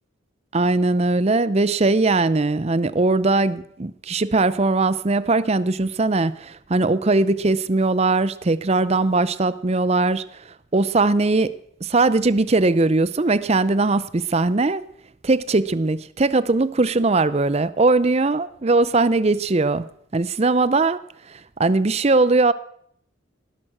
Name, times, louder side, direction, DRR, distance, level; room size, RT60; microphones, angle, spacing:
voice 1, 0.5-10.2 10.7-11.5 11.8-14.8 15.2-19.8 20.1-21.0 21.6-22.5, right 3 dB, 30° right, 0.6 m, -20 dB
18.5 x 11.0 x 6.0 m
head